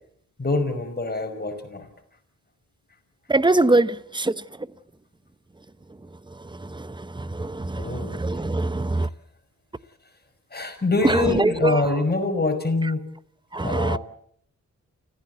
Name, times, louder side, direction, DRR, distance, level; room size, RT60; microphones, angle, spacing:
voice 1, 0.4-1.9 7.8-8.1 10.5-13.0 13.6-14.0, left 3 dB, 35° left, 5.5 m, -25 dB
voice 2, 3.3-3.9 4.2-4.3 7.4-7.5 8.2-9.1 11.0-11.4 13.5-14.0, right 2 dB, 15° right, 0.9 m, -21 dB
29.5 x 15.5 x 8.0 m
cardioid pair, 75°, 30 cm